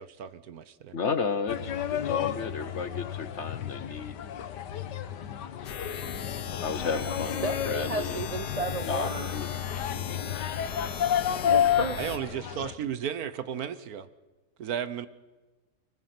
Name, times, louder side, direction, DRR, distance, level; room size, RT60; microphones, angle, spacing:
voice 1, 0.0-0.9 12.0-14.1 14.6-15.1, right 8 dB, 65° right, 14 dB, 1.3 m, -34 dB
voice 2, 0.9-4.1 6.6-8.2 8.9-9.6, left 5 dB, 50° left, 12 dB, 1.1 m, -33 dB
sound 1, 1.5-12.7, left 10 dB, 85° left, 1.6 m, -31 dB
sound 2, 5.6-12.2, left 7 dB, 70° left, 1.7 m, -37 dB
voice 3, 7.4-9.3 11.4-12.0, right 3 dB, 35° right, 8 dB, 0.6 m, -33 dB
24.5 x 20.0 x 5.9 m, 1.2 s
omnidirectional pair, 1.8 m